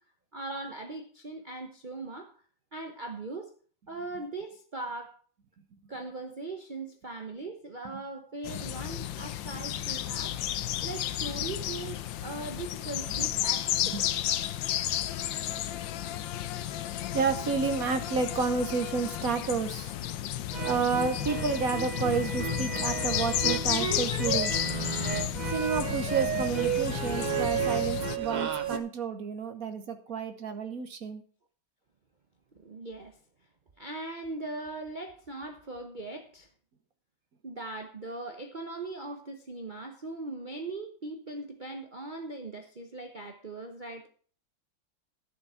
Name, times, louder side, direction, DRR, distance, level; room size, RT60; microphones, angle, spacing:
voice 1, 0.3-2.3 2.7-3.5 3.9-5.2 5.9-10.4 10.8-14.1 28.7-28.8 32.5-33.2 33.8-36.5 37.4-44.1, right 2 dB, 30° right, 4 dB, 1.0 m, -40 dB
sound 1, 8.4-28.2, left 12 dB, 90° left, 1.4 m, -32 dB
voice 2, 17.1-19.9 20.6-24.5 25.4-31.2, right 5 dB, 55° right, 9 dB, 1.4 m, -30 dB
sound 2, 20.5-28.8, right 7 dB, 85° right, 0.4 m, -32 dB
12.0 x 7.2 x 5.7 m, 0.42 s
omnidirectional pair, 2.0 m